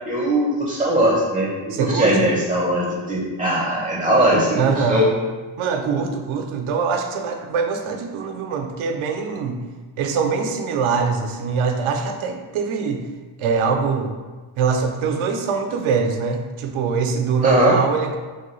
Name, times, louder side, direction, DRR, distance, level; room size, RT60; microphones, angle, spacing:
voice 1, 0.1-4.6 4.9-5.1 17.4-17.7, right 1 dB, 10° right, -5 dB, 0.4 m, -19 dB
voice 2, 1.7-2.3 4.6-5.1 5.6-9.6 10.0-13.0 13.4-14.1 14.6-18.2, right 5 dB, 80° right, 5 dB, 0.5 m, -23 dB
3.1 x 2.2 x 3.0 m, 1.3 s
cardioid pair, 105°, 48 cm